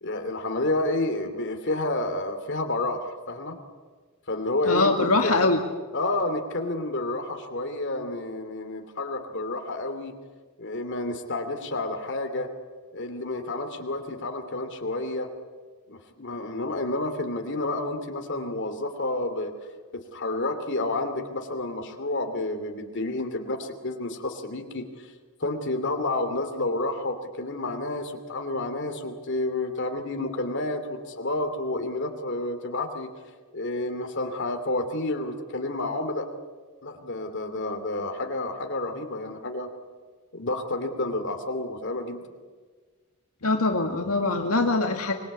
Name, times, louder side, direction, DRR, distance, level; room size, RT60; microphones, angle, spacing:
voice 1, 0.0-3.6 4.3-5.5 5.9-10.2 10.6-12.5 12.9-15.3 15.9-19.5 19.9-25.1 25.4-33.1 33.5-36.3 36.8-39.7 40.3-42.2, left 2 dB, 55° left, 6 dB, 2.7 m, -30 dB
voice 2, 4.7-5.6 43.4-45.1, left 3 dB, 85° left, 3 dB, 2.0 m, -23 dB
24.5 x 22.0 x 8.5 m, 1.5 s
head